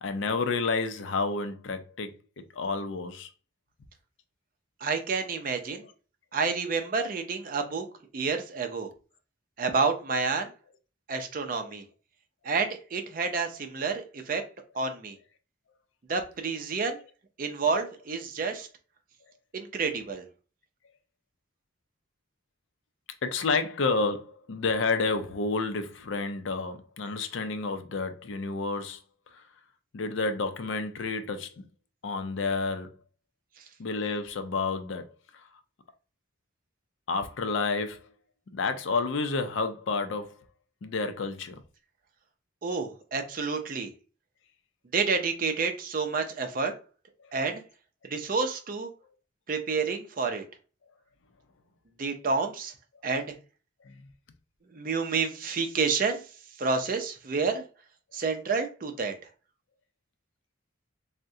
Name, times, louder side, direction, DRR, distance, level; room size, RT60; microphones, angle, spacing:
voice 1, 0.0-2.1 2.6-3.3 23.2-29.0 29.9-31.5 32.0-32.9 33.8-35.1 37.1-38.0 38.5-40.4 40.8-41.6 53.8-54.0, left 4 dB, 75° left, 0.4 m, -30 dB
voice 2, 4.8-5.9 6.3-7.9 8.1-8.9 9.6-10.5 11.1-11.8 12.4-14.4 14.7-15.2 16.1-17.0 17.4-18.7 19.5-20.2 33.6-33.7 42.6-43.9 44.9-46.7 47.3-47.6 48.0-48.9 49.5-50.4 52.0-52.7 53.0-53.3 54.7-57.6 58.1-59.1, right 4 dB, 45° right, 0.4 m, -29 dB
3.6 x 2.1 x 2.6 m
head